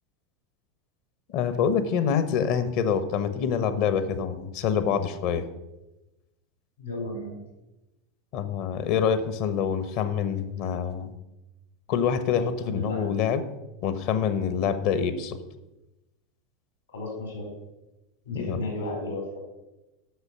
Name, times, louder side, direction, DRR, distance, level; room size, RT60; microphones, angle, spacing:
voice 1, 1.3-5.4 8.3-11.1 11.9-13.4 13.8-15.4 18.3-18.6, left 7 dB, 55° left, 11 dB, 1.0 m, -26 dB
voice 2, 6.8-7.4 12.6-13.1 16.9-17.5 18.2-19.4, left 2 dB, 80° left, 1 dB, 3.9 m, -33 dB
8.0 x 6.5 x 5.8 m, 0.99 s
figure-of-eight pair, 80°, 0 cm